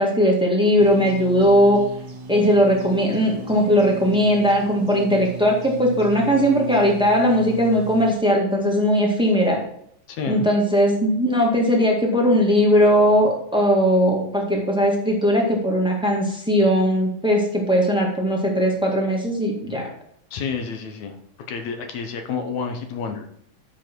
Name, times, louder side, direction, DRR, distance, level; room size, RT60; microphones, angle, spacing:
voice 1, 0.0-1.8 2.3-9.6 10.3-19.8, equal, 5° right, -1 dB, 0.5 m, -19 dB
sound 1, 0.8-8.1, right 5 dB, 55° right, 1.1 m, -36 dB
voice 2, 10.1-10.5 20.3-21.2 21.5-23.3, left 5 dB, 65° left, 6 dB, 2.1 m, -29 dB
9.9 x 6.6 x 4.6 m, 0.68 s
omnidirectional pair, 3.9 m